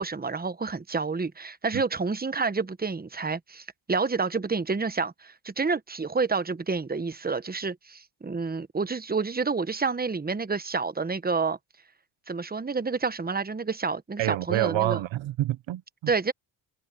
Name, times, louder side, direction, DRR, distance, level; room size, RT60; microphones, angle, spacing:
voice 1, 0.0-11.6 12.3-15.0 16.1-16.3, right 4 dB, 20° right, 1.0 m, -29 dB
voice 2, 14.2-16.1, right 15 dB, 80° right, 0.7 m, -27 dB
cardioid pair, 60°, 46 cm